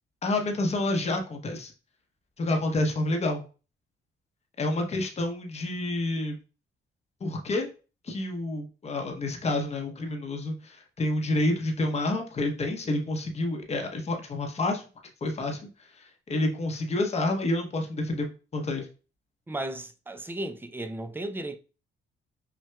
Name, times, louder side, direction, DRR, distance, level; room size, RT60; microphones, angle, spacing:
voice 1, 0.2-1.7 2.4-3.5 4.6-6.4 7.2-7.7 8.0-14.8 15.2-18.3 18.5-18.9, left 2 dB, 35° left, 0.8 m, -29 dB
voice 2, 19.5-21.6, right 1 dB, 10° right, 0.4 m, -35 dB
5.6 x 2.2 x 2.3 m
cardioid pair, 90°, 20 cm